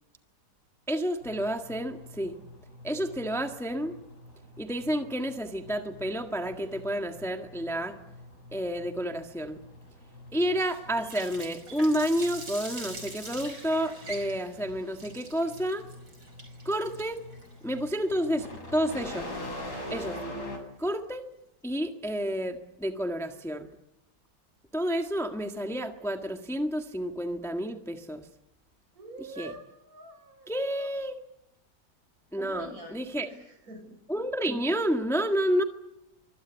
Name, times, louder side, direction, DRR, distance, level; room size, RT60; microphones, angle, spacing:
voice 1, 0.9-2.4 2.8-3.9 4.6-8.0 8.5-9.6 10.3-15.9 16.6-17.2 17.6-19.3 19.9-20.2 20.8-21.2 21.6-23.7 24.7-28.3 29.2-29.5 30.5-31.2 32.3-33.3 34.1-35.6, equal, ahead, 5 dB, 1.5 m, -30 dB
sound 1, 1.2-20.6, left 1 dB, 65° left, 8.3 m, -45 dB
Water tap faucet, 10.6-19.5, right 2 dB, 85° right, 6.0 m, -44 dB
voice 2, 28.9-30.5 32.4-33.9, right 2 dB, 50° right, 5 dB, 8.0 m, -46 dB
25.0 x 25.0 x 8.2 m, 0.86 s
omnidirectional pair, 1.9 m